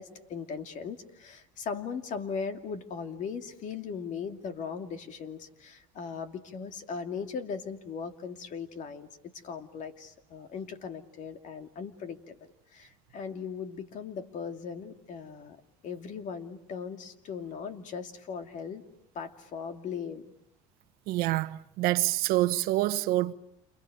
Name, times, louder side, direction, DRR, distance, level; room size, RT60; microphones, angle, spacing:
voice 1, 0.0-12.4 12.7-18.8 19.1-20.3, left 6 dB, 50° left, 2.6 m, -38 dB
voice 2, 21.1-23.3, right 16 dB, 65° right, 1.1 m, -26 dB
29.5 x 28.5 x 6.7 m
supercardioid pair, 110°, 17 cm